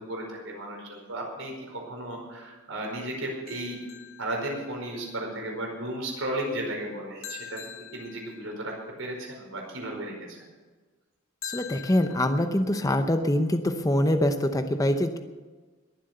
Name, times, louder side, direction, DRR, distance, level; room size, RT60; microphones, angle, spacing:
voice 1, 0.0-3.8 4.2-7.6 7.9-8.7 9.0-10.5, right 1 dB, 80° right, 0 dB, 4.9 m, -34 dB
sound 1, 3.5-5.0 7.2-8.9 11.4-12.5, left 8 dB, 80° left, 2.7 m, -43 dB
voice 2, 11.4-15.2, left 1 dB, 15° left, 7 dB, 0.7 m, -24 dB
21.5 x 7.7 x 6.7 m, 1.3 s
head